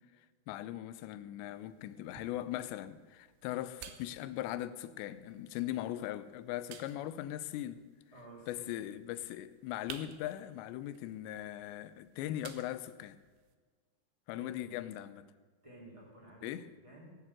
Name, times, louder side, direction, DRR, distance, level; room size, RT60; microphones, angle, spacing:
voice 1, 0.5-7.8 8.5-13.2 14.3-15.3 16.4-16.7, left 13 dB, 85° left, 2.9 m, -40 dB
sound 1, 1.5-13.6, right 9 dB, 80° right, 2.9 m, -56 dB
voice 2, 8.1-8.8 14.3-14.7 15.6-16.5 16.8-17.1, right 1 dB, 10° right, 2.8 m, -53 dB
18.5 x 7.4 x 7.7 m
omnidirectional pair, 5.0 m